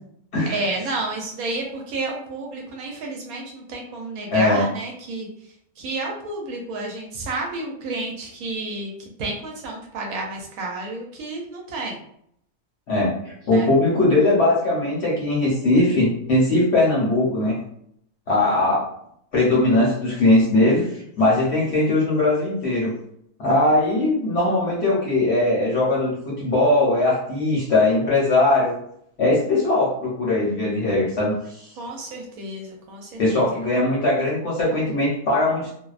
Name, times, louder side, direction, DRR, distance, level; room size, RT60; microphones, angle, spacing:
voice 1, 0.5-5.3 5.8-12.0 13.4-13.7 31.8-33.6, right 2 dB, 75° right, 0 dB, 1.0 m, -31 dB
voice 2, 4.3-4.6 12.9-17.6 18.3-18.9 19.3-22.9 23.4-28.7 29.2-31.7 33.2-35.7, left 2 dB, 55° left, -5 dB, 0.8 m, -20 dB
2.6 x 2.0 x 2.3 m, 0.70 s
omnidirectional pair, 1.6 m